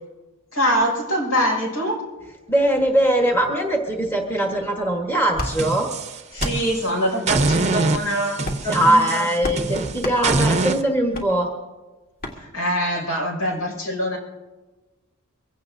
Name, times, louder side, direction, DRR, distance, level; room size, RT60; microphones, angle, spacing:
voice 1, 0.5-2.0 6.3-9.2 12.4-14.2, equal, 75° left, 0 dB, 5.4 m, -24 dB
voice 2, 2.5-5.9 8.7-11.5, right 1 dB, 10° left, 1 dB, 1.3 m, -21 dB
sound 1, 5.3-5.5 6.3-6.6 7.5-7.7 8.4-8.7 9.4-9.6 10.0-10.2 11.1-11.3 12.2-12.4, left 1 dB, 40° left, 1.9 m, -29 dB
sound 2, 5.4-6.9 7.3-10.8, right 3 dB, 30° right, 0.7 m, -24 dB
24.0 x 16.5 x 2.7 m, 1.2 s
head